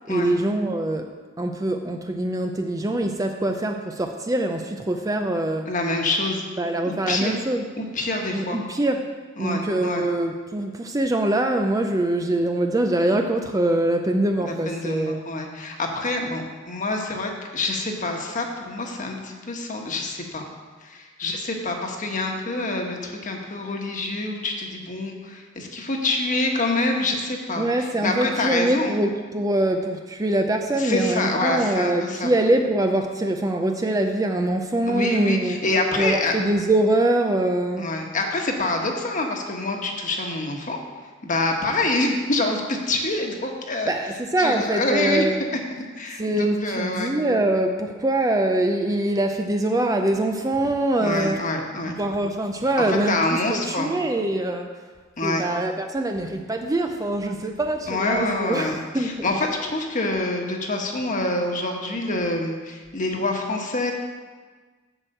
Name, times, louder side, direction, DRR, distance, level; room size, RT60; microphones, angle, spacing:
voice 1, 0.1-1.1 1.4-5.7 6.6-7.7 8.3-9.1 9.4-15.3 27.6-35.6 36.0-37.9 43.9-45.4 46.2-51.4 51.9-54.7 55.2-59.2, right 1 dB, 15° right, 4 dB, 0.5 m, -23 dB
voice 2, 5.7-6.4 6.8-7.3 7.8-8.6 9.4-10.0 14.4-20.4 20.8-29.0 30.7-32.3 34.9-36.3 37.8-40.8 41.2-43.9 44.4-45.2 46.0-47.1 51.0-51.9 52.9-53.9 55.2-55.4 57.9-63.9, left 2 dB, 40° left, 2 dB, 1.3 m, -26 dB
7.9 x 6.1 x 7.7 m, 1.4 s
head